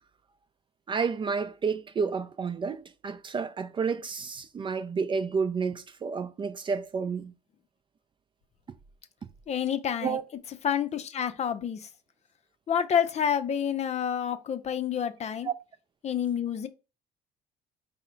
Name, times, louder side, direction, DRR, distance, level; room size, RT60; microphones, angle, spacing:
voice 1, 0.9-7.3 10.0-10.2 15.4-15.5, right 5 dB, 30° right, 0.4 m, -30 dB
voice 2, 9.5-10.2 10.6-11.9 12.7-15.5 16.0-16.7, left 8 dB, 40° left, 0.5 m, -28 dB
5.4 x 2.1 x 3.8 m
cardioid pair, 110°, 17 cm